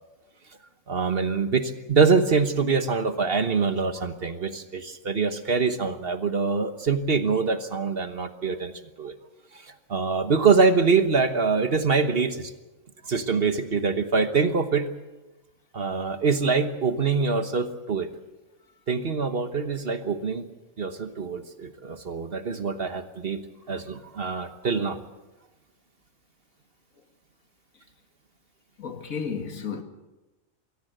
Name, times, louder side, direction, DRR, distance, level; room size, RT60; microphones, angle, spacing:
voice 1, 0.9-8.7 9.0-9.1 9.5-12.5 13.0-14.9 15.7-18.1 18.9-20.5 20.8-23.4 23.7-25.0, right 5 dB, 45° right, 1.3 m, -24 dB
voice 2, 28.8-29.8, left 6 dB, 75° left, 2.1 m, -32 dB
23.0 x 16.5 x 8.0 m
omnidirectional pair, 1.4 m